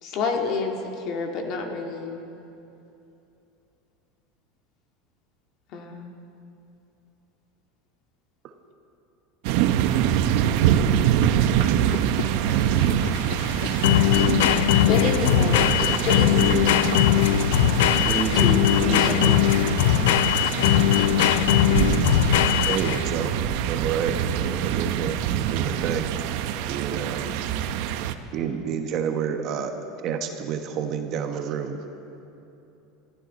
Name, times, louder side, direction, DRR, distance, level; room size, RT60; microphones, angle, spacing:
voice 1, 0.0-2.2 5.7-6.1 14.9-16.9, left 4 dB, 45° left, 2 dB, 1.9 m, -29 dB
sound 1, 9.4-28.1, right 10 dB, 65° right, 0.7 m, -25 dB
sound 2, 11.6-23.2, left 14 dB, 85° left, 0.4 m, -20 dB
voice 2, 17.8-19.4, right 2 dB, 5° right, 1 dB, 1.7 m, -29 dB
voice 3, 22.7-23.3 23.7-24.2 24.4-25.2 25.5-26.1 26.7-27.2 27.8-28.0 28.3-29.7 30.0-31.8, right 8 dB, 45° right, 5 dB, 1.2 m, -29 dB
22.5 x 14.5 x 4.2 m, 2.8 s
supercardioid pair, 145°, 0 cm